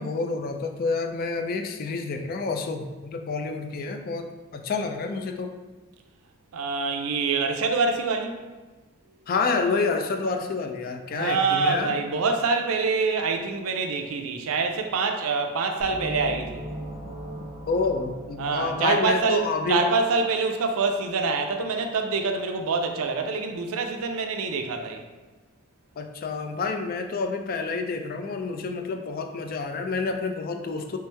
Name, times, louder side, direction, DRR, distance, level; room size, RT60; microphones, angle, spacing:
voice 1, 0.0-5.5 9.3-12.0 17.7-19.8 26.0-31.0, left 4 dB, 45° left, 5 dB, 0.3 m, -28 dB
voice 2, 6.5-8.3 11.1-16.6 18.4-19.4 19.7-25.0, right 4 dB, 85° right, 5 dB, 0.4 m, -25 dB
sound 1, 15.8-19.6, right 1 dB, 25° left, 1.1 m, -39 dB
3.4 x 3.1 x 3.3 m, 1.3 s
head